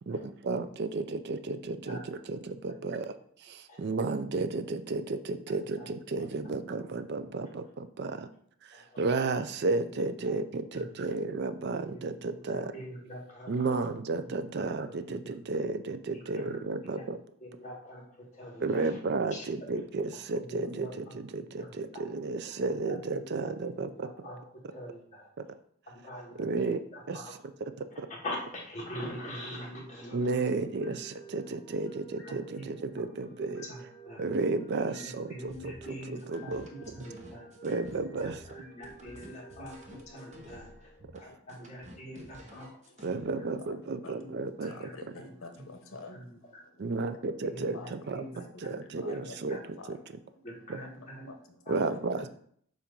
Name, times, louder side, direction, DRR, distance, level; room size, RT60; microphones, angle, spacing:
voice 1, 0.1-3.1 3.4-8.3 8.6-12.7 13.5-17.2 18.6-24.1 25.4-25.5 26.4-27.2 28.0-28.1 30.1-33.6 34.2-35.7 36.1-36.9 37.6-38.4 43.0-44.7 46.8-48.2 48.6-49.6 49.9-50.0 50.7-50.8 51.7-52.3, right 3 dB, 50° right, 11 dB, 0.4 m, -33 dB
voice 2, 8.7-9.0 10.2-10.3 10.7-10.9 11.9-12.0 12.5-13.7 14.2-14.7 15.1-15.3 16.3-16.5 16.9-17.0 17.4-18.9 19.3-19.5 20.4-21.1 21.6-21.7 22.9-24.4 24.7-25.3 25.9-27.3 27.9-30.4 30.8-30.9 32.2-33.0 33.6-34.3 34.9-36.5 36.9-37.5 38.2-42.7 43.0-43.3 44.2-44.3 44.6-45.2 45.6-45.7 46.1-46.3 46.5-46.6 47.4-48.7 49.1-49.2 49.5-49.6 50.4-51.3 51.7-51.8, equal, 35° left, -2 dB, 1.5 m, -44 dB
sound 1, 29.6-41.7, right 3 dB, 10° left, 1.1 m, -53 dB
sound 2, 35.4-43.2, equal, 35° right, 0.9 m, -52 dB
voice 3, 43.6-47.3 47.7-52.3, left 3 dB, 70° left, 5 dB, 0.9 m, -50 dB
7.2 x 2.5 x 5.2 m, 0.63 s
head